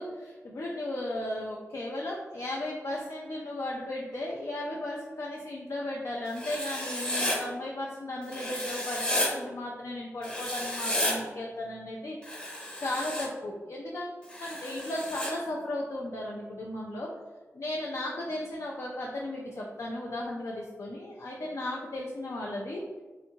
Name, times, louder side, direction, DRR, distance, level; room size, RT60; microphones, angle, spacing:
voice 1, 0.0-12.2 12.8-17.1 17.5-22.8, left 1 dB, 65° left, -3 dB, 0.4 m, -35 dB
Writing, 6.4-7.4 8.3-9.3 10.2-11.1 12.2-13.3 14.3-15.3, left 1 dB, 15° left, 0.7 m, -32 dB
2.8 x 2.4 x 2.6 m, 1.2 s
cardioid pair, 50°, 5 cm